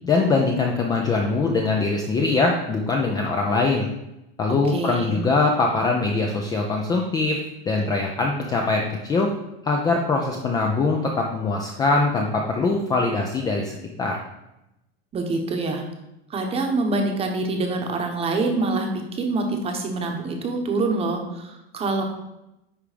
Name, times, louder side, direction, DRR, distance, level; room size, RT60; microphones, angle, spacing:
voice 1, 0.0-3.9 4.4-7.4 7.7-9.3 9.6-14.2, left 3 dB, 15° left, 1 dB, 0.4 m, -22 dB
voice 2, 4.7-5.2 15.1-15.8 16.3-22.0, right 3 dB, 20° right, 3 dB, 1.0 m, -25 dB
10.0 x 3.4 x 5.0 m, 0.91 s
supercardioid pair, 160°, 30 cm